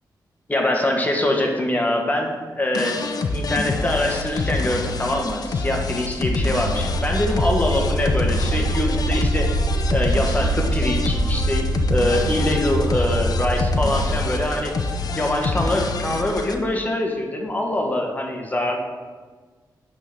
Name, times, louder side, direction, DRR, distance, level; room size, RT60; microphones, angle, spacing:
voice 1, 0.5-3.0 3.3-9.5 9.9-14.7 15.1-18.8, left 1 dB, 20° left, 1 dB, 1.3 m, -24 dB
sound 1, 2.7-16.5, left 3 dB, 55° left, 0.7 m, -27 dB
sound 2, 6.3-14.2, right 1 dB, 55° right, 2.0 m, -24 dB
8.7 x 3.8 x 6.6 m, 1.4 s
cardioid pair, 95°, 8 cm